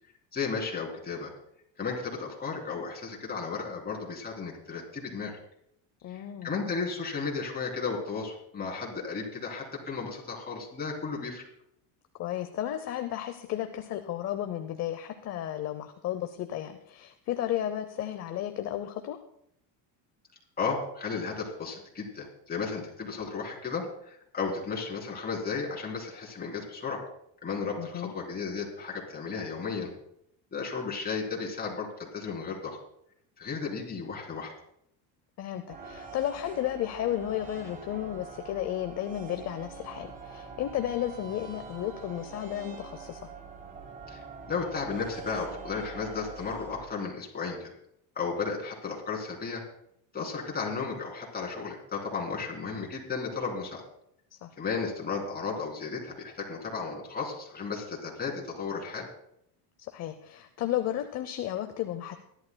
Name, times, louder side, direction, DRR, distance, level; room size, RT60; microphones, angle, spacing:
voice 1, 0.3-1.3 1.8-5.4 6.1-11.4 20.6-27.0 27.4-29.9 30.5-32.8 33.4-34.5 44.1-44.2 44.5-47.7 48.1-49.6 50.1-53.8 54.6-59.1, left 5 dB, 20° left, -2 dB, 3.2 m, -34 dB
voice 2, 6.0-6.5 12.2-19.2 27.8-28.1 35.4-43.3 54.4-54.5 59.9-62.2, left 12 dB, 35° left, 8 dB, 0.7 m, -33 dB
sound 1, 35.7-46.9, right 4 dB, 15° right, 1.2 m, -45 dB
24.5 x 11.5 x 2.2 m, 0.74 s
cardioid pair, 150°, 46 cm